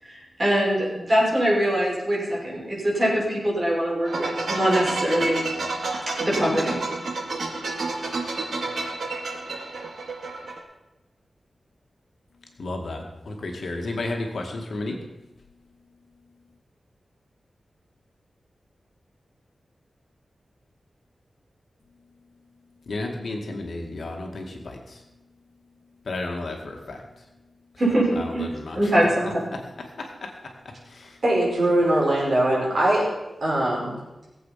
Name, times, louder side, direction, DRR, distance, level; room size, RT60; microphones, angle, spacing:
voice 1, 0.0-5.5 6.2-6.8 27.8-28.4 28.7-29.4, equal, 30° right, -5 dB, 6.5 m, -23 dB
sound 1, 4.1-10.6, right 3 dB, 70° right, 2.2 m, -30 dB
voice 2, 12.6-15.0 22.9-25.0 26.1-27.0 28.2-28.9 29.2-29.6 30.0-31.2, left 2 dB, 60° left, 2 dB, 2.1 m, -33 dB
voice 3, 31.2-33.0 33.4-34.0, right 1 dB, 50° right, -3 dB, 4.9 m, -21 dB
19.5 x 8.1 x 5.8 m, 1.0 s
wide cardioid pair, 135°, 0 cm